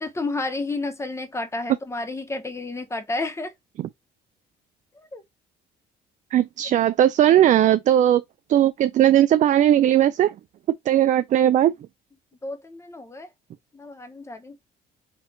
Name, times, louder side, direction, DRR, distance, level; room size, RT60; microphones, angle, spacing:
voice 1, 0.0-3.5 5.1-5.2 12.4-13.3 13.7-14.6, left 2 dB, 15° left, 1.0 m, -31 dB
voice 2, 6.3-8.2 8.5-10.3 10.9-11.7, right 11 dB, 50° right, 0.4 m, -18 dB
4.5 x 2.5 x 4.3 m
cardioid pair, 110°, 17 cm